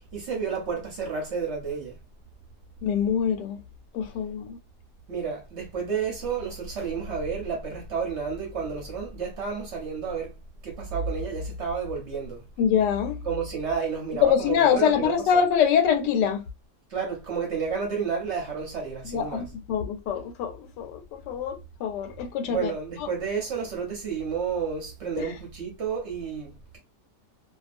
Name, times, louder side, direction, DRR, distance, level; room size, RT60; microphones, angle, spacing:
voice 1, 0.1-1.9 5.1-10.3 10.6-12.4 13.2-15.4 16.9-19.5 22.5-26.8, right 6 dB, 60° right, 0.8 m, -31 dB
voice 2, 2.8-3.6 3.9-4.6 12.6-13.2 14.2-16.4 19.1-22.7 23.0-23.1 25.2-25.3, left 8 dB, 90° left, 1.2 m, -24 dB
2.5 x 2.3 x 2.4 m
omnidirectional pair, 1.8 m